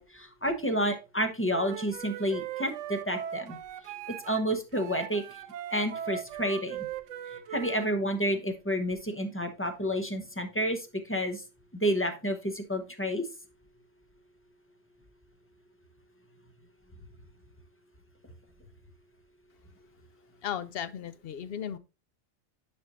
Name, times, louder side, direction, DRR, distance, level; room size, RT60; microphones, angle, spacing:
voice 1, 0.0-3.6 3.8-5.4 5.7-6.9 7.3-11.4 11.7-13.3, equal, 10° left, 0.8 m, -30 dB
Wind instrument woodwind instrument, 1.5-4.4 4.7-7.9, right 10 dB, 85° right, 0.9 m, -39 dB
voice 2, 20.4-21.8, left 9 dB, 65° left, 0.7 m, -35 dB
9.8 x 5.3 x 2.6 m
omnidirectional pair, 1.2 m